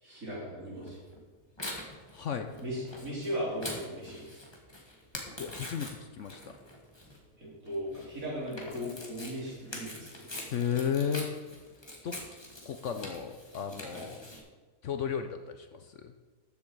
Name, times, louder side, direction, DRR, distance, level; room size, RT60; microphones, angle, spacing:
voice 1, 0.0-1.0 2.6-4.4 7.4-10.3 13.9-14.1, equal, 60° right, -6 dB, 4.4 m, -37 dB
Tearing, 0.9-14.4, left 1 dB, 15° left, 1.6 m, -44 dB
voice 2, 2.1-2.5 5.4-6.5 10.5-11.5 12.0-12.2 12.7-14.2 14.8-16.1, left 7 dB, 60° left, 7 dB, 0.9 m, -34 dB
13.5 x 7.4 x 4.7 m, 1.4 s
omnidirectional pair, 1.6 m